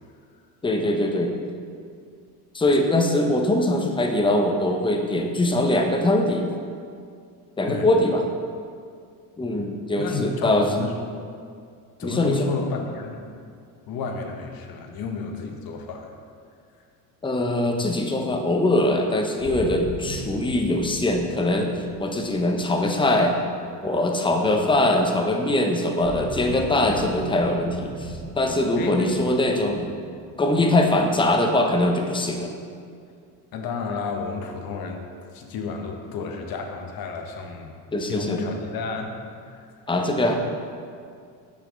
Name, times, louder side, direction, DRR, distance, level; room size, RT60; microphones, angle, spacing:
voice 1, 0.6-1.4 2.5-6.4 7.6-8.2 9.4-10.7 12.0-12.5 17.2-21.7 22.0-23.4 23.8-29.9 30.4-32.5 37.9-38.4 39.9-40.3, left 1 dB, 10° left, 3 dB, 0.7 m, -22 dB
voice 2, 10.0-11.0 12.0-13.3 13.9-16.1 28.8-29.1 33.5-35.0 35.3-39.2 39.5-39.7, left 4 dB, 50° left, 3 dB, 1.1 m, -31 dB
sound 1, 19.4-24.4 26.0-31.7, right 1 dB, 10° right, 1.7 m, -38 dB
8.4 x 5.8 x 3.8 m, 2.2 s
supercardioid pair, 110°, 47 cm